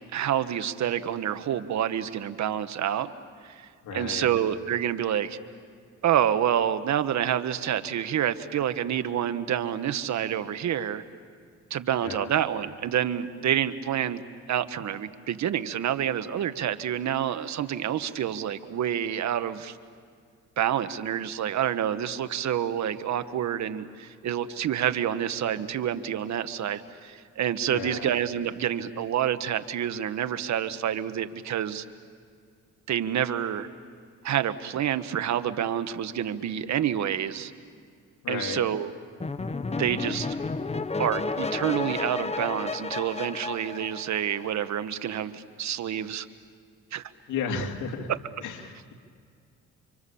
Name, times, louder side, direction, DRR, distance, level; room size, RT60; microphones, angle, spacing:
voice 1, 0.1-3.1 3.4-5.4 6.0-11.0 11.7-14.2 14.5-19.8 20.6-31.8 32.9-33.7 34.2-37.5 38.3-38.9 39.8-40.3 41.0-46.3 46.9-47.0, right 10 dB, 65° right, 11 dB, 1.3 m, -28 dB
voice 2, 3.8-4.3 12.0-12.3 27.7-28.1 38.2-38.7 47.3-48.1 48.4-48.9, left 6 dB, 85° left, 3 dB, 2.8 m, -33 dB
sound 1, 39.2-44.7, left 3 dB, 20° left, 1.1 m, -32 dB
30.0 x 26.0 x 7.1 m, 2.2 s
cardioid pair, 90°, 30 cm